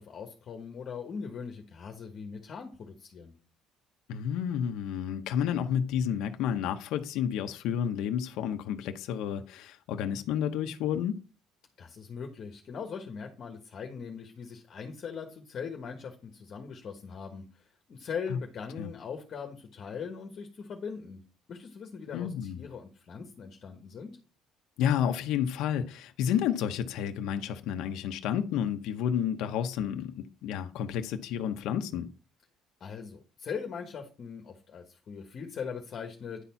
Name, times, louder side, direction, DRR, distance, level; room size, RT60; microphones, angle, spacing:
voice 1, 0.0-3.3 11.8-21.2 21.5-24.2 32.8-36.4, left 6 dB, 40° left, 1.3 m, -40 dB
voice 2, 4.1-11.2 18.3-18.4 18.8-18.9 22.1-22.6 24.8-32.1, left 9 dB, 75° left, 0.8 m, -30 dB
10.0 x 4.2 x 5.7 m
cardioid pair, 140°, 0 cm